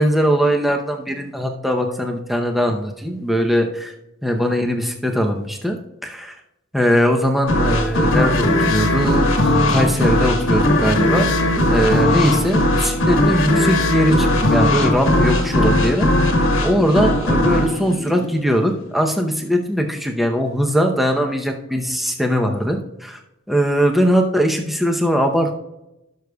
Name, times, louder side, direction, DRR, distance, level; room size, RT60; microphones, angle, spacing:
voice 1, 0.0-3.9 4.2-6.4 6.7-16.1 16.6-23.2 23.5-25.6, equal, ahead, 2 dB, 0.7 m, -20 dB
sound 1, 7.5-18.9, left 1 dB, 85° left, 1.4 m, -18 dB
17.0 x 6.4 x 2.3 m, 0.91 s
head